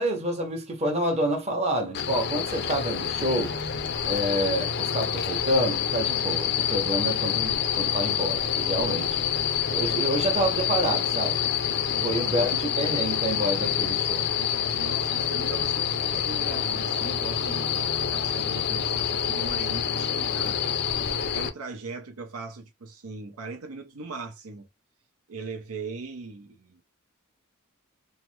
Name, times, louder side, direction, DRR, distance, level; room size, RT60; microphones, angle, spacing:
voice 1, 0.0-3.6 4.1-9.2 9.6-11.4 12.0-12.5 12.8-14.3, right 1 dB, 30° right, 0.8 m, -28 dB
sound 1, 1.9-21.5, left 8 dB, 50° left, 0.5 m, -27 dB
voice 2, 11.9-12.6 14.7-24.7 25.3-26.8, right 3 dB, 85° right, 0.7 m, -40 dB
3.2 x 2.0 x 3.1 m
head